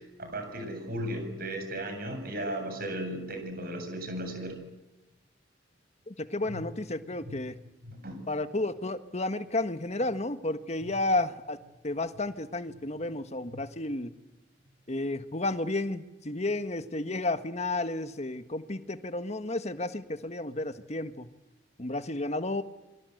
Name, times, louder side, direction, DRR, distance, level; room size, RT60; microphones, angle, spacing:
voice 1, 0.0-4.6 6.5-6.7 7.2-7.4 7.8-8.2 10.8-10.9 13.5-13.6, right 1 dB, 55° right, 6 dB, 7.9 m, -36 dB
voice 2, 6.1-7.6 8.3-11.6 11.8-14.1 14.9-21.3 21.8-22.6, left 2 dB, 35° left, 10 dB, 1.6 m, -32 dB
27.5 x 24.0 x 8.0 m, 1.0 s
head